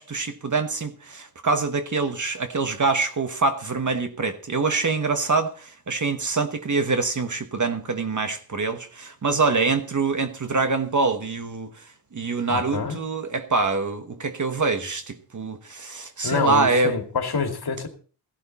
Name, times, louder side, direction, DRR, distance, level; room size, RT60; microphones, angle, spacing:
voice 1, 0.0-11.7 12.1-16.9, right 4 dB, 45° right, 1.2 m, -25 dB
voice 2, 12.5-13.0 16.2-17.9, left 4 dB, 65° left, 2.3 m, -26 dB
16.0 x 11.0 x 4.1 m
wide cardioid pair, 100°, 41 cm